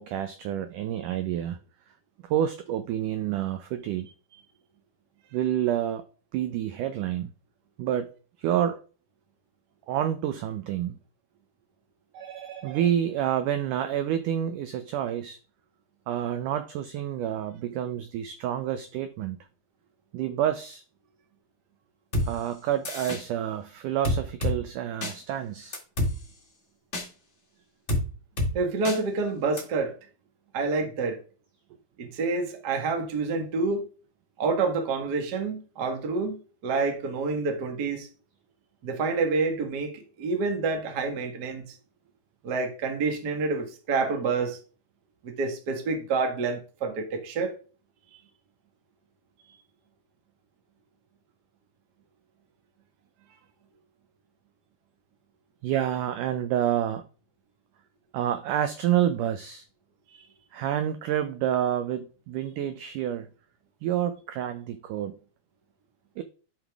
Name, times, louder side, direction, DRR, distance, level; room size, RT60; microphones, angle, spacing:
voice 1, 0.0-1.6 2.3-4.1 5.3-6.0 6.3-7.3 7.8-8.1 8.4-8.8 9.9-11.0 12.1-15.4 16.1-19.4 20.1-20.8 22.2-25.8 55.6-57.0 58.1-59.7 60.5-63.3 63.8-65.2 66.2-66.3, right 10 dB, 85° right, 1.8 m, -28 dB
sound 1, 22.1-22.3 22.8-23.2 24.0-24.5 25.0-25.1 25.7-26.1 26.9-27.1 27.9-28.0 28.4-28.5 28.8-29.0 29.6-29.7, left 1 dB, 50° left, 0.8 m, -26 dB
voice 2, 28.5-29.9 30.5-31.2 32.0-33.9 34.4-38.1 38.8-41.7 42.4-44.6 45.2-47.5, right 4 dB, 55° right, 1.1 m, -28 dB
12.0 x 5.7 x 3.5 m
omnidirectional pair, 4.5 m